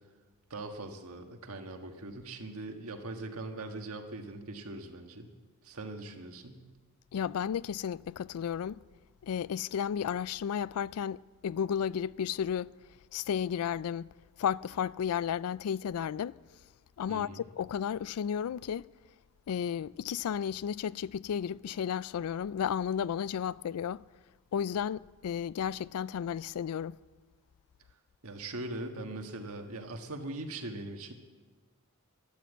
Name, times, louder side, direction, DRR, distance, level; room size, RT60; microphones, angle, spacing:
voice 1, 0.5-5.3 5.6-6.6 17.1-17.4 28.2-31.1, right 2 dB, 80° right, 1.6 m, -41 dB
voice 2, 7.1-8.8 9.2-12.7 13.1-14.1 14.4-16.4 17.0-18.8 19.5-24.0 24.5-27.0, left 8 dB, 90° left, 0.3 m, -33 dB
12.0 x 11.5 x 8.1 m
head